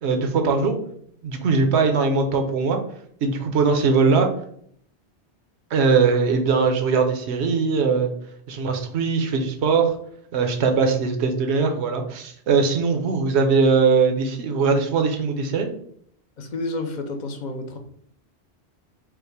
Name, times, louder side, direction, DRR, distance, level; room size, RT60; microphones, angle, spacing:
voice 1, 0.0-0.7 1.2-2.8 3.2-4.3 5.7-8.1 8.5-10.0 10.3-15.7, right 4 dB, 75° right, 4 dB, 1.0 m, -20 dB
voice 2, 16.4-17.8, left 2 dB, 45° left, 5 dB, 0.7 m, -30 dB
5.5 x 2.1 x 4.6 m, 0.65 s
omnidirectional pair, 1.2 m